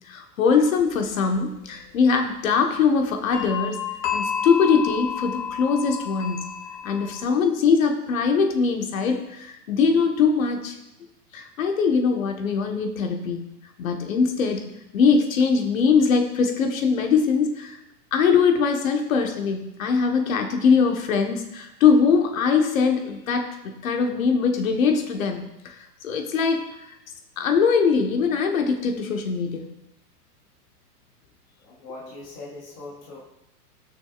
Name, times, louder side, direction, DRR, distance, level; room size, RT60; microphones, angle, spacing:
voice 1, 0.1-3.8 4.1-6.5 6.8-10.7 11.3-13.4 13.8-17.8 18.1-25.7 26.0-26.7 27.4-29.7, left 5 dB, 55° left, 4 dB, 1.3 m, -22 dB
sound 1, 0.8-1.0 3.3-7.2, left 7 dB, 80° left, 1.6 m, -30 dB
voice 2, 31.6-33.2, left 2 dB, 15° left, -5 dB, 0.5 m, -40 dB
16.5 x 6.3 x 2.4 m, 0.90 s
hypercardioid pair, 170°, 48 cm